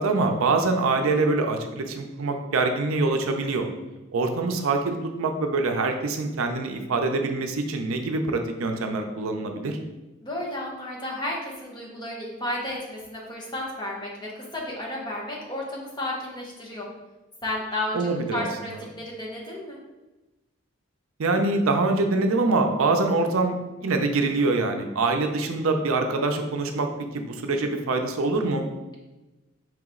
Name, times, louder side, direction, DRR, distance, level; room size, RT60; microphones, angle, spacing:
voice 1, 0.0-3.7 4.1-9.8 17.9-18.8 21.2-28.7, right 3 dB, 80° right, 5 dB, 0.5 m, -24 dB
voice 2, 10.2-16.9 17.4-18.7 19.0-19.8, left 1 dB, 20° left, -3 dB, 0.9 m, -32 dB
4.7 x 3.0 x 3.7 m, 1.1 s
head